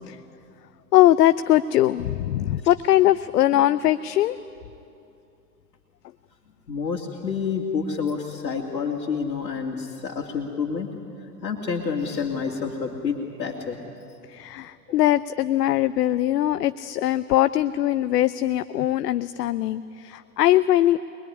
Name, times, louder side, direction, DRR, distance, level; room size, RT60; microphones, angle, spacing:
voice 1, 0.9-4.4 14.3-21.0, left 13 dB, 70° left, 14 dB, 0.8 m, -21 dB
voice 2, 6.7-10.9 11.4-13.8 14.9-15.0, left 5 dB, 90° left, -3 dB, 2.6 m, -28 dB
24.5 x 21.5 x 9.9 m, 2.6 s
hypercardioid pair, 105°, 49 cm